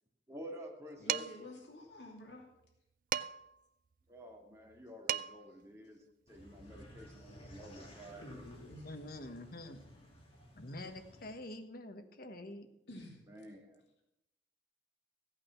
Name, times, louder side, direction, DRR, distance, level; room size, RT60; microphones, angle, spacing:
voice 1, 0.3-1.2 4.1-6.0 6.3-8.4 13.3-13.8, equal, 15° right, -1 dB, 2.4 m, -50 dB
voice 2, 1.0-2.5 8.2-9.0 12.9-13.2, left 1 dB, 75° left, 0 dB, 2.8 m, -50 dB
Dishes pots and pans, 1.1-1.5 3.1-3.6 4.7-4.8 5.1-5.5, right 10 dB, 50° right, 0.4 m, -36 dB
sound 1, 6.3-11.3, equal, 35° left, 2.7 m, -56 dB
voice 3, 8.8-9.8 10.6-12.7, left 1 dB, 55° left, 7 dB, 1.4 m, -46 dB
15.5 x 8.8 x 5.9 m, 0.86 s
head